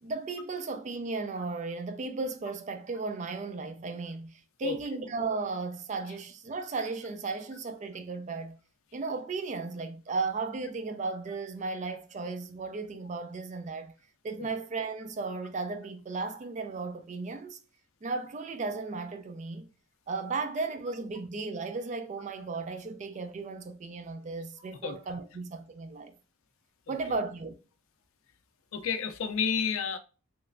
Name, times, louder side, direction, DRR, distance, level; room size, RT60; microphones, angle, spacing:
voice 1, 0.0-8.6 8.9-13.9 14.2-17.6 18.0-19.7 20.1-26.1 26.9-27.5, right 4 dB, 35° right, 0.3 m, -35 dB
voice 2, 28.7-30.0, left 6 dB, 70° left, 0.4 m, -30 dB
3.2 x 3.1 x 2.4 m
head